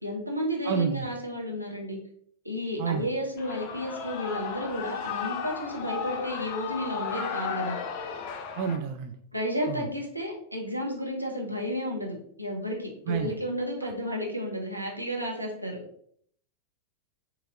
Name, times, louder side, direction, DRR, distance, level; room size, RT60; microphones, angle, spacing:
voice 1, 0.0-2.0 2.4-7.8 9.3-15.8, equal, 90° right, -1 dB, 0.8 m, -32 dB
voice 2, 0.7-1.1 2.8-3.0 8.6-9.1 9.7-9.8 13.1-13.3, right 7 dB, 45° right, 4 dB, 0.3 m, -29 dB
Shout / Cheering, 3.4-8.8, left 6 dB, 45° left, 0.4 m, -34 dB
3.9 x 2.9 x 2.5 m, 0.64 s
figure-of-eight pair, 90°, 0 cm